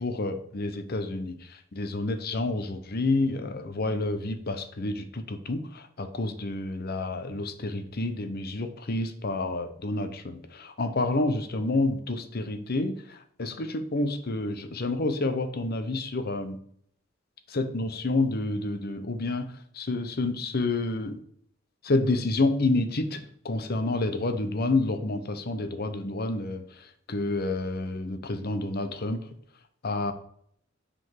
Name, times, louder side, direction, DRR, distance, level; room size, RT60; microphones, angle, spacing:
voice 1, 0.0-16.6 17.5-21.2 21.8-29.2 29.8-30.1, left 2 dB, 50° left, 9 dB, 0.8 m, -29 dB
6.0 x 5.0 x 4.7 m, 0.65 s
head